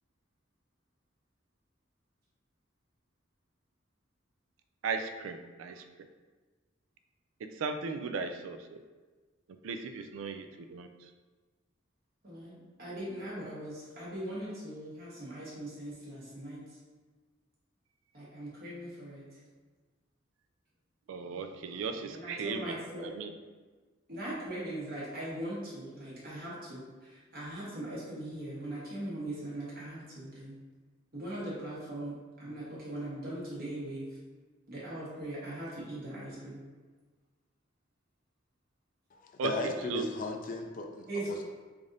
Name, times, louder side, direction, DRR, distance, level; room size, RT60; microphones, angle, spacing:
voice 1, 4.8-5.8 7.6-8.8 9.6-10.9 21.1-23.3 39.4-40.1, right 4 dB, 90° right, 7 dB, 0.3 m, -36 dB
voice 2, 12.2-16.8 18.1-19.4 22.1-23.1 24.1-30.5 31.1-34.1 34.7-36.6 41.1-41.3, right 1 dB, 50° right, -8 dB, 1.0 m, -40 dB
voice 3, 39.1-41.4, left 3 dB, 45° left, 3 dB, 0.4 m, -36 dB
3.3 x 2.6 x 3.8 m, 1.3 s
head